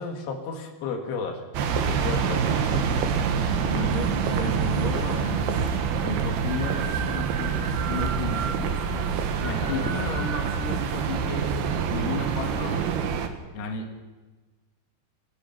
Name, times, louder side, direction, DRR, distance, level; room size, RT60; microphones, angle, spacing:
voice 1, 0.0-3.0 9.6-10.0, left 4 dB, 75° left, 3 dB, 4.2 m, -34 dB
sound 1, 1.5-13.3, right 6 dB, 65° right, 2.8 m, -26 dB
voice 2, 3.6-5.5 6.0-9.1 9.4-11.4 11.9-12.8 13.5-14.0, left 2 dB, 50° left, 2 dB, 3.6 m, -33 dB
29.5 x 15.0 x 5.9 m, 1.2 s
omnidirectional pair, 5.6 m